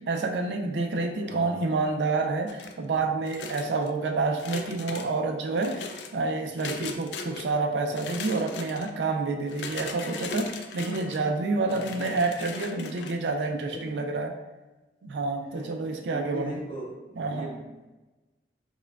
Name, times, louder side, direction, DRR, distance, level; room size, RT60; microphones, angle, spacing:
voice 1, 0.1-14.3 15.0-16.6 17.2-17.5, right 3 dB, 80° right, 4 dB, 0.4 m, -28 dB
voice 2, 1.2-1.6 4.1-4.2 4.9-5.2 11.6-11.9 13.7-13.9 15.4-17.9, equal, 30° left, -4 dB, 0.7 m, -41 dB
sound 1, 2.5-2.9 3.3-3.9 4.3-5.1 5.6-6.1 6.6-7.5 7.9-8.9 9.5-11.2 11.7-13.1, left 4 dB, 80° left, 0.3 m, -38 dB
4.4 x 2.2 x 2.3 m, 1.1 s
head